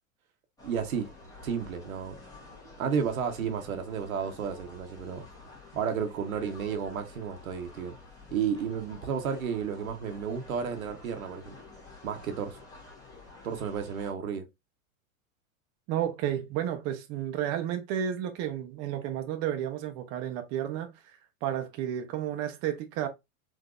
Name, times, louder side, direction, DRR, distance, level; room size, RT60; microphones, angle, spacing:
sound 1, 0.6-14.1, left 3 dB, 10° left, 1.2 m, -50 dB
voice 1, 0.6-1.1 1.4-2.1 2.8-5.3 5.7-8.0 8.3-11.6 12.0-12.6 13.4-14.4, right 7 dB, 80° right, 0.9 m, -32 dB
voice 2, 15.9-20.9 21.4-23.1, right 10 dB, 40° right, 0.7 m, -32 dB
3.8 x 2.6 x 2.4 m
hypercardioid pair, 105°, 41 cm